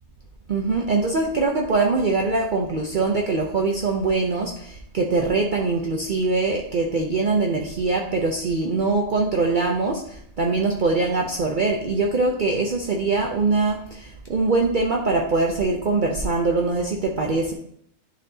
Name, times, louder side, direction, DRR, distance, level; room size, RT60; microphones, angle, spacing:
voice 1, 0.5-10.0 10.4-17.5, right 3 dB, 45° right, 0 dB, 0.7 m, -22 dB
10.5 x 4.3 x 2.8 m, 0.66 s
omnidirectional pair, 1.3 m